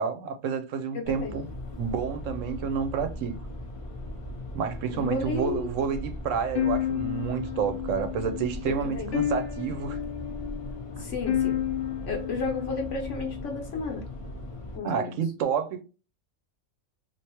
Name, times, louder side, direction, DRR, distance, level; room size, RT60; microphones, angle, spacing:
voice 1, 0.0-1.5 1.8-3.4 4.5-10.0 11.0-11.1 14.8-15.8, right 7 dB, 70° right, 0.9 m, -29 dB
voice 2, 0.9-1.4 4.9-5.7 8.7-9.1 11.0-11.6 12.0-14.0 14.8-15.1, left 4 dB, 65° left, 1.0 m, -33 dB
sound 1, 1.0-14.8, left 1 dB, 35° left, 0.5 m, -39 dB
sound 2, 6.5-13.7, left 11 dB, 85° left, 1.2 m, -32 dB
3.3 x 2.6 x 2.9 m
omnidirectional pair, 1.4 m